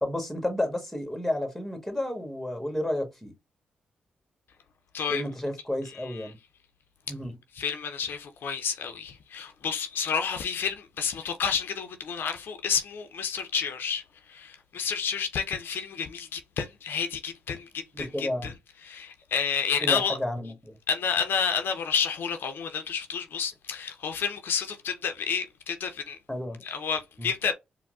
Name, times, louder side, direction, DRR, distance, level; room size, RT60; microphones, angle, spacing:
voice 1, 0.0-3.3 5.1-6.3 7.1-7.3 17.9-18.5 19.8-20.7 26.3-26.6 27.2-27.3, left 1 dB, 5° left, 1.3 m, -31 dB
voice 2, 7.5-14.0 14.3-18.5 18.8-20.2 20.9-26.2 26.6-27.5, left 6 dB, 65° left, 0.5 m, -30 dB
4.4 x 2.0 x 2.4 m
hypercardioid pair, 45°, 4 cm